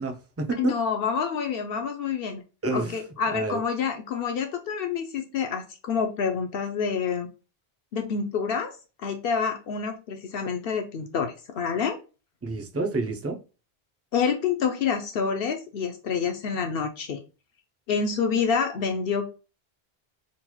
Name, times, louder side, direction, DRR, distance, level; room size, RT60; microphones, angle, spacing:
voice 1, 0.0-0.8 2.6-3.0 3.3-3.6 12.4-13.4, right 3 dB, 25° right, 0.3 m, -29 dB
voice 2, 0.6-2.4 2.7-7.3 7.9-8.8 9.0-12.0 14.1-17.2 17.9-19.3, left 6 dB, 70° left, 0.8 m, -27 dB
3.9 x 3.0 x 2.2 m
omnidirectional pair, 1.0 m